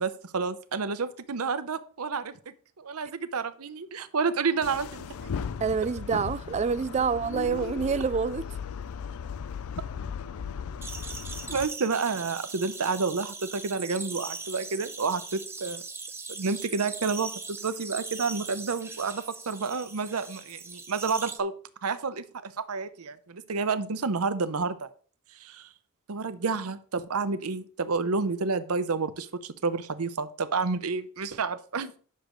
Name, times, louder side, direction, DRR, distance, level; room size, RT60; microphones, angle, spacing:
voice 1, 0.0-2.3 2.8-5.3 11.5-15.8 16.3-21.5 21.8-24.9 25.4-25.7 26.1-32.0, right 4 dB, 75° right, 0.7 m, -30 dB
sound 1, 4.6-11.7, left 6 dB, 70° left, 0.4 m, -36 dB
voice 2, 5.6-8.5, right 5 dB, 30° right, 0.3 m, -27 dB
sound 2, 10.8-21.4, right 4 dB, 10° right, 0.8 m, -40 dB
10.5 x 6.5 x 3.1 m
head